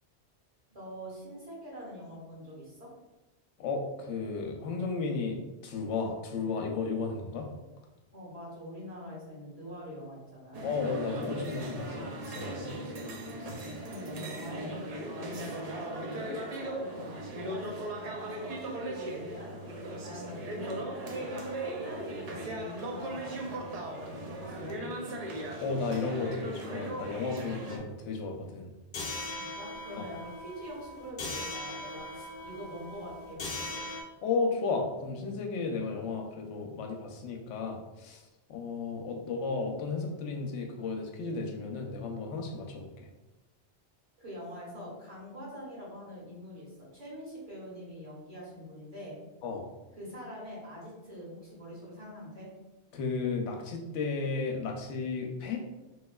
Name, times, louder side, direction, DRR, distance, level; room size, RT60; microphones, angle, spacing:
voice 1, 0.7-2.9 8.1-10.7 13.8-21.3 21.6-25.1 29.4-33.9 44.2-49.2 50.0-52.5, equal, 35° right, -7 dB, 1.2 m, -44 dB
voice 2, 3.6-5.4 5.6-7.5 10.6-12.7 25.6-28.7 30.0-30.1 34.2-38.2 38.5-42.9 49.4-49.7 52.9-55.6, left 4 dB, 85° left, 2 dB, 0.9 m, -34 dB
sound 1, 10.5-27.8, right 1 dB, 60° right, 0.4 m, -38 dB
sound 2, 28.9-34.0, left 2 dB, 50° left, 0.7 m, -39 dB
3.5 x 3.0 x 2.2 m, 1.0 s
omnidirectional pair, 1.2 m